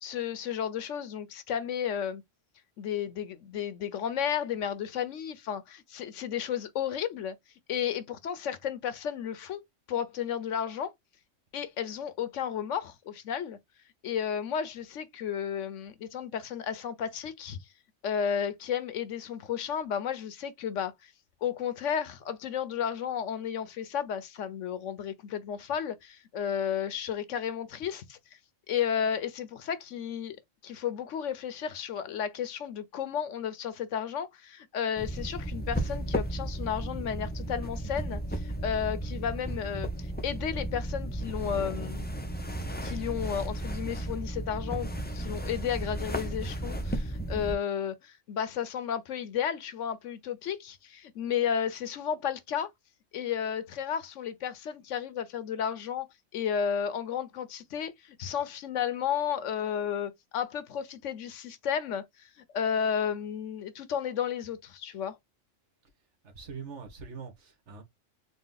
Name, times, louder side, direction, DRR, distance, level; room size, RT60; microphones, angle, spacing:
voice 1, 0.0-2.2 2.8-7.3 7.7-9.6 9.9-10.9 11.5-13.6 14.0-17.6 18.0-21.1 21.4-28.2 28.7-30.4 30.6-42.1 42.8-52.7 53.1-56.1 56.3-62.3 62.5-65.2, left 8 dB, 75° left, 1.1 m, -33 dB
sound 1, 35.0-47.5, right 1 dB, 15° left, 0.4 m, -34 dB
voice 2, 66.3-67.8, right 5 dB, 65° right, 1.5 m, -43 dB
4.1 x 2.2 x 3.8 m
omnidirectional pair, 1.3 m